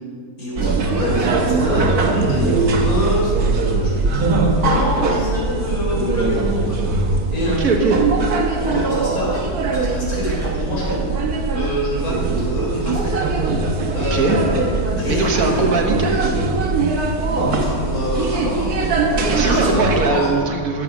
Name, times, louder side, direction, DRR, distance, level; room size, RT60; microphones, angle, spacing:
voice 1, 0.4-7.8 8.6-9.4 9.7-13.2 13.9-15.8 17.4-19.8 20.1-20.3, left 1 dB, 75° left, -5 dB, 4.3 m, -26 dB
sound 1, 0.6-20.1, right 3 dB, 90° right, 1.6 m, -21 dB
voice 2, 7.4-8.0 14.0-14.5 15.1-16.2 19.4-20.8, right 3 dB, 70° right, 2 dB, 1.7 m, -20 dB
13.0 x 7.4 x 6.1 m, 2.1 s
omnidirectional pair, 1.6 m